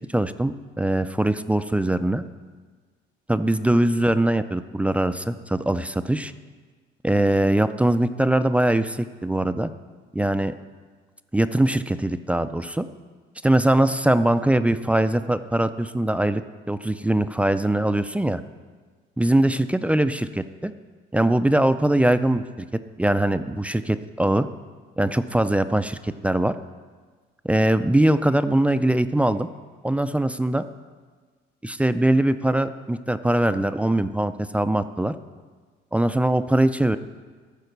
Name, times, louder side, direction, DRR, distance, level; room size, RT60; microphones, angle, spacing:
voice 1, 0.1-2.2 3.3-6.3 7.0-9.7 10.1-10.5 11.3-12.9 13.4-16.4 16.7-18.4 19.2-20.7 21.1-22.7 23.0-24.5 25.0-26.6 27.4-29.5 29.8-30.6 31.6-35.1 35.9-37.0, right 1 dB, 5° right, 11 dB, 0.3 m, -22 dB
13.5 x 4.9 x 6.7 m, 1.5 s
cardioid pair, 110°, 21 cm